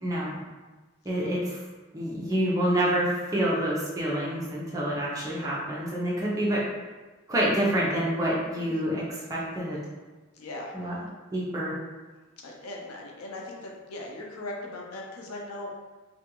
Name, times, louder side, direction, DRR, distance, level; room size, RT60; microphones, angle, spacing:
voice 1, 0.0-0.4 1.0-1.6 1.9-6.6 7.3-9.0 9.3-9.8 10.7-10.9 11.3-11.7, right 1 dB, 15° right, -6 dB, 0.5 m, -27 dB
voice 2, 8.5-8.8 10.3-11.0 12.4-15.7, left 2 dB, 90° left, -1 dB, 0.5 m, -39 dB
2.4 x 2.2 x 2.9 m, 1.2 s
head